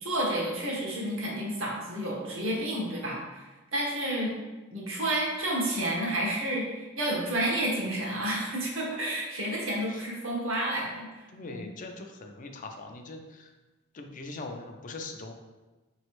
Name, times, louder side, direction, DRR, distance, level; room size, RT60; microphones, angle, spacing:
voice 1, 0.0-4.3 4.7-11.7, right 1 dB, 70° right, -3 dB, 1.1 m, -30 dB
voice 2, 11.3-13.5 13.9-15.3, left 3 dB, 40° left, 4 dB, 0.4 m, -41 dB
4.9 x 3.1 x 3.0 m, 1.2 s
head